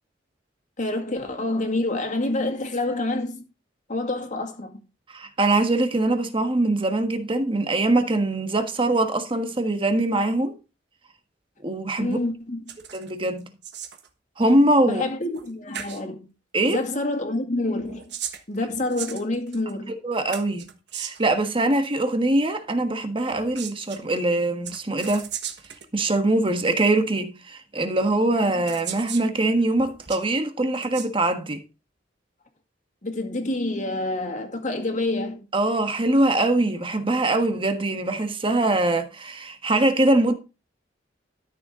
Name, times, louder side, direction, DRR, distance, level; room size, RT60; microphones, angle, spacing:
voice 1, 0.8-3.5 3.9-4.8 12.0-12.8 14.8-16.3 16.6-18.2 18.5-20.0 28.4-28.6 33.0-35.5, left 2 dB, 40° left, 2.1 m, -27 dB
voice 2, 5.1-10.5 11.6-12.2 12.9-13.5 14.4-15.0 16.5-16.8 20.0-25.3 25.9-31.6 35.5-40.3, right 2 dB, 30° right, 1.4 m, -23 dB
sound 1, 12.7-13.1 13.4-14.1 15.3-15.5 15.7-16.0 17.8-19.7 20.3-21.3 23.3-24.0 24.6-25.9 26.8-26.9 28.0-28.1 28.7-29.3 29.8-30.3 30.7-31.1, right 9 dB, 65° right, 1.4 m, -36 dB
13.0 x 6.7 x 3.7 m
head